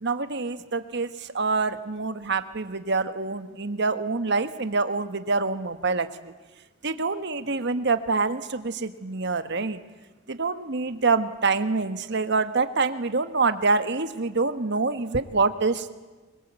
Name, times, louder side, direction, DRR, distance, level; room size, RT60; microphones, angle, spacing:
voice 1, 0.0-6.3 6.8-9.8 10.3-15.9, right 4 dB, 60° right, 10 dB, 1.4 m, -26 dB
24.5 x 23.5 x 8.2 m, 1.2 s
head